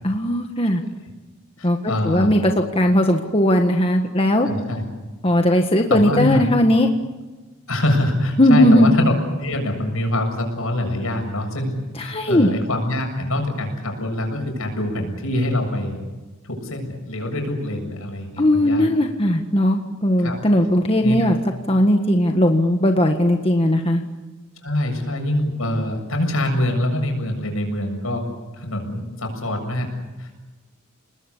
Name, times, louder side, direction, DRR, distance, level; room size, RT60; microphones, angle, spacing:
voice 1, 0.0-0.8 1.6-1.8 2.0-4.5 5.2-6.9 8.4-8.9 11.9-12.5 18.4-21.4 21.7-24.0, left 1 dB, 25° left, 4 dB, 1.6 m, -18 dB
voice 2, 1.6-2.3 4.4-4.8 5.9-6.4 7.7-9.1 9.4-16.0 16.4-18.9 20.2-20.4 21.0-21.3 24.6-28.2 28.6-29.9 30.2-30.3, left 1 dB, 75° left, 4 dB, 7.3 m, -24 dB
29.5 x 20.5 x 8.5 m, 1.2 s
head